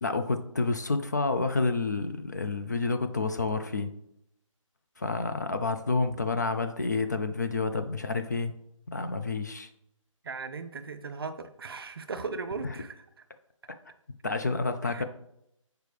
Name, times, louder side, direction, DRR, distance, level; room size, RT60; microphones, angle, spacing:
voice 1, 0.0-3.9 5.0-8.5 8.9-9.7 12.6-12.7 14.2-15.0, left 3 dB, 35° left, 8 dB, 0.3 m, -29 dB
voice 2, 10.2-13.0 14.8-15.0, right 4 dB, 45° right, 9 dB, 0.5 m, -37 dB
6.8 x 4.6 x 3.2 m, 0.76 s
figure-of-eight pair, 165°, 17 cm